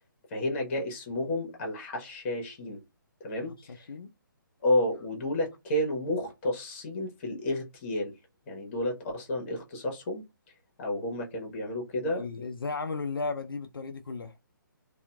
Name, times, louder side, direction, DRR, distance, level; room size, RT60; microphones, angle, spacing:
voice 1, 0.3-2.8 3.2-3.9 4.6-8.1 8.5-10.2 10.8-12.5, left 1 dB, 35° left, 1.2 m, -31 dB
voice 2, 3.5-4.1 12.0-14.4, left 4 dB, 85° left, 0.4 m, -35 dB
2.7 x 2.4 x 2.2 m
figure-of-eight pair, 145°, 12 cm